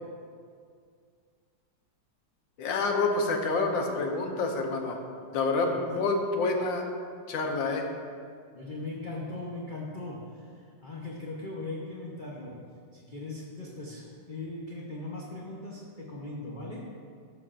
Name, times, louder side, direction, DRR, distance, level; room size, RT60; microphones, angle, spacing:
voice 1, 2.6-5.0 5.3-6.8 7.3-7.8, left 3 dB, 85° left, 3 dB, 1.5 m, -28 dB
voice 2, 8.5-17.0, left 2 dB, 50° left, -4 dB, 0.6 m, -39 dB
12.0 x 6.7 x 2.5 m, 2.2 s
omnidirectional pair, 2.0 m